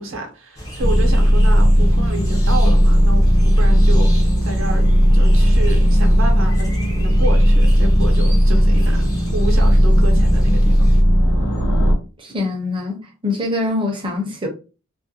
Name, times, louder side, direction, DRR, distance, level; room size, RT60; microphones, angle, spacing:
voice 1, 0.0-4.1 4.4-4.9 5.1-6.7 7.0-9.0 9.3-10.8, right 1 dB, 65° right, 0.7 m, -29 dB
sound 1, 0.6-11.0, equal, 15° left, 0.6 m, -33 dB
sound 2, 0.8-11.9, equal, 85° left, 0.8 m, -14 dB
voice 2, 12.2-14.5, left 2 dB, 25° right, 0.6 m, -24 dB
2.4 x 2.1 x 2.6 m
head